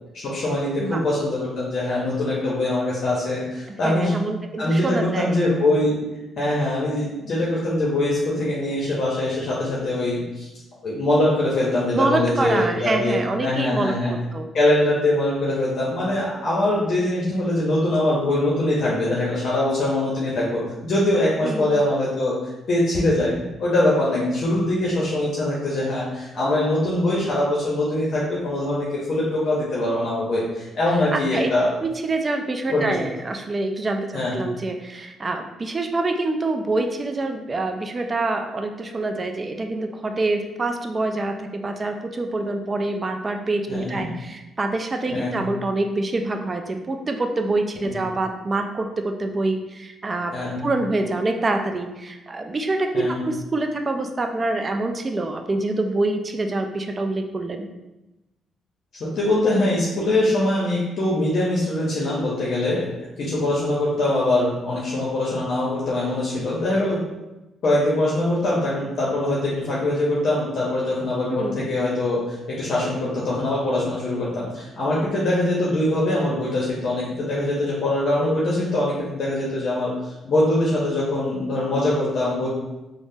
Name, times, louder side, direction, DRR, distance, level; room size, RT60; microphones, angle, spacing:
voice 1, 0.2-4.1 4.6-6.0 6.4-10.5 10.8-14.1 14.5-31.7 32.7-32.9 34.1-34.4 43.7-44.1 45.1-45.4 50.3-50.6 52.9-53.2 59.1-62.9 63.2-67.0 67.6-82.5, left 1 dB, 60° left, -5 dB, 0.6 m, -23 dB
voice 2, 3.8-5.4 11.9-14.5 21.4-21.8 31.1-31.5 31.8-50.3 50.6-57.7 71.3-71.6, right 2 dB, 30° right, 5 dB, 0.3 m, -26 dB
3.4 x 2.0 x 2.6 m, 1.0 s
cardioid pair, 90°, 0 cm